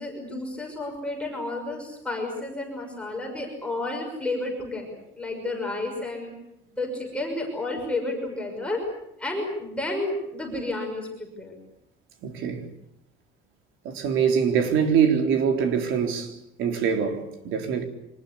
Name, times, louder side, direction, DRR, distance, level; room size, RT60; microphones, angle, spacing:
voice 1, 0.0-4.9 5.1-6.3 6.7-8.8 9.2-11.6, left 2 dB, 5° left, 6.3 m, -31 dB
voice 2, 12.2-12.7 13.8-17.8, right 7 dB, 75° right, 4.0 m, -24 dB
25.0 x 20.5 x 8.5 m
cardioid pair, 170°, 21 cm